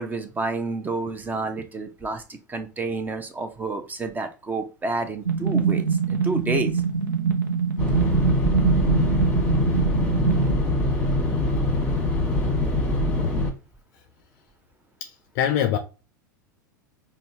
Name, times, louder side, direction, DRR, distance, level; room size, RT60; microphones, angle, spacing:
voice 1, 0.0-5.8 6.1-6.8, right 3 dB, 15° right, 0.7 m, -29 dB
sound 1, 5.3-10.5, right 6 dB, 85° right, 0.6 m, -24 dB
sound 2, 7.8-13.5, left 1 dB, 10° left, 1.3 m, -23 dB
voice 2, 15.0-15.8, left 10 dB, 50° left, 0.5 m, -24 dB
5.3 x 2.2 x 2.8 m
hypercardioid pair, 90°, 11 cm